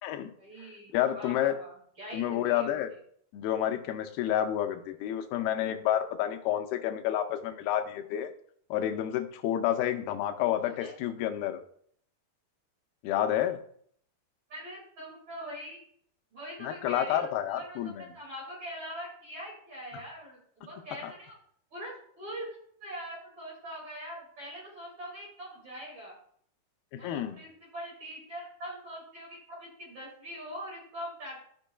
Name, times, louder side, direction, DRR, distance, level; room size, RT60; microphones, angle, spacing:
voice 1, 0.4-2.8 10.4-10.9 14.5-15.8 16.3-21.4 21.7-22.5 22.8-26.2 26.9-31.4, equal, 40° right, -4 dB, 2.6 m, -43 dB
voice 2, 0.9-1.6 2.1-2.9 3.3-8.3 8.7-11.6 13.0-13.6 16.6-18.1 21.0-21.1 26.9-27.4, left 11 dB, 90° left, 6 dB, 2.5 m, -29 dB
13.5 x 5.3 x 2.3 m, 0.63 s
omnidirectional pair, 4.3 m